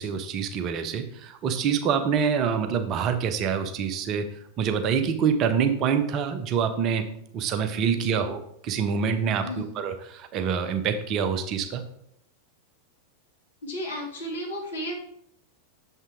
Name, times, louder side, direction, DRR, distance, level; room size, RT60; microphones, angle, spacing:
voice 1, 0.0-4.2 4.6-7.0 7.3-11.8, right 7 dB, 35° right, 8 dB, 0.6 m, -26 dB
voice 2, 7.9-8.3 9.4-9.8 13.6-14.9, equal, 65° left, -2 dB, 2.5 m, -34 dB
6.9 x 5.4 x 3.6 m, 0.72 s
figure-of-eight pair, 90°, 0 cm